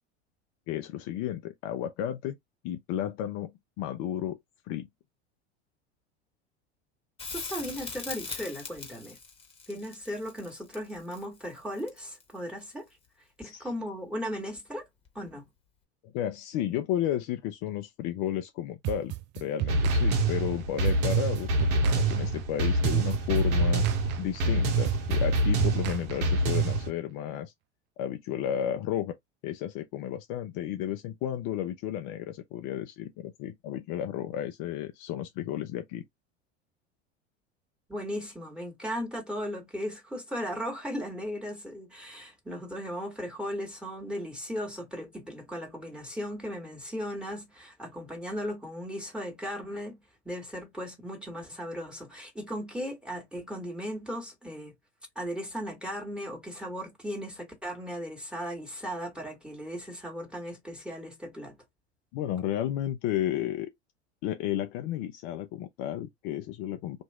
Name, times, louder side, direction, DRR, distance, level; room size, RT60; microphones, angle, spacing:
voice 1, 0.7-2.4 2.6-3.5 3.8-4.4 4.7-4.9 13.4-13.7 16.0-23.8 24.2-27.5 28.0-29.1 29.4-36.0 62.1-63.7 64.2-67.0, left 11 dB, 50° left, 0.6 m, -33 dB
Crackle, 7.2-12.3 15.1-15.2, left 4 dB, 15° left, 1.4 m, -41 dB
voice 2, 7.3-9.2 9.7-12.9 13.4-14.9 15.2-15.5 37.9-50.0 50.3-54.7 55.2-61.6, equal, 5° right, 1.8 m, -37 dB
sound 1, 18.8-26.7, right 16 dB, 35° right, 0.4 m, -35 dB
sound 2, 19.7-26.9, right 2 dB, 60° right, 1.1 m, -26 dB
2.9 x 2.6 x 3.4 m
hypercardioid pair, 90°, 35 cm